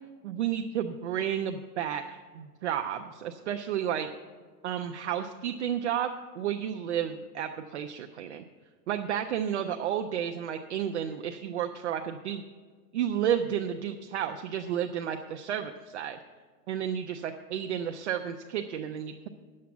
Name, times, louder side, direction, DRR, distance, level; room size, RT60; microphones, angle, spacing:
voice 1, 0.2-4.1 4.6-8.4 8.9-12.4 12.9-16.2 16.7-19.3, right 9 dB, 45° right, 5 dB, 0.5 m, -32 dB
10.5 x 7.5 x 7.0 m, 1.5 s
hypercardioid pair, 165°, 49 cm